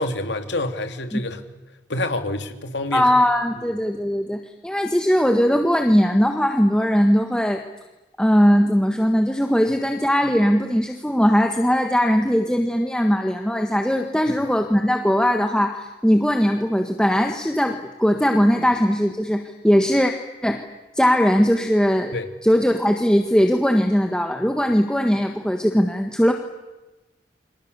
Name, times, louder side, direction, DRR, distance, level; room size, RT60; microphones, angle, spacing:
voice 1, 0.0-1.4 1.9-3.1 14.3-14.4 22.1-22.3, left 2 dB, 90° left, 7 dB, 2.6 m, -27 dB
voice 2, 2.9-7.6 8.2-20.1 20.4-20.6 20.9-22.1 22.4-26.3, equal, 5° left, 4 dB, 1.4 m, -19 dB
29.5 x 26.5 x 6.8 m, 1.1 s
head